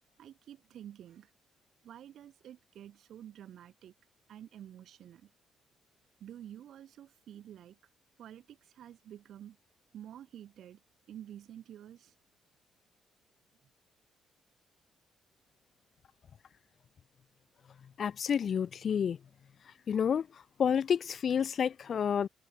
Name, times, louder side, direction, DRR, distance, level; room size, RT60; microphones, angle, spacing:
voice 1, 0.2-1.3 1.8-3.9 4.3-5.3 6.2-7.8 8.2-9.6 9.9-10.8 11.1-12.1, right 10 dB, 70° right, 5.7 m, -49 dB
voice 2, 18.0-19.2 19.9-20.3 20.6-22.3, left 7 dB, 55° left, 0.4 m, -29 dB
cardioid pair, 90°, 0 cm